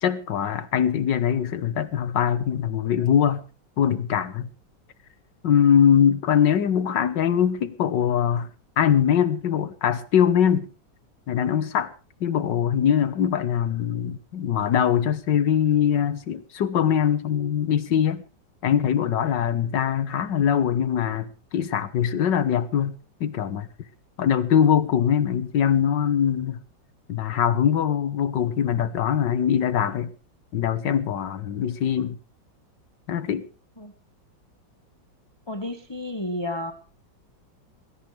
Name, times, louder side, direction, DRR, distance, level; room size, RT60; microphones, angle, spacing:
voice 1, 0.0-3.4 3.8-4.5 5.4-8.5 8.8-10.7 11.3-11.9 12.2-18.2 18.6-23.7 24.2-26.6 27.1-30.1 30.5-32.2 33.1-33.4, left 8 dB, 70° left, 1.8 m, -22 dB
voice 2, 35.5-36.7, left 1 dB, 15° left, 1.4 m, -31 dB
20.0 x 17.5 x 3.4 m
omnidirectional pair, 2.0 m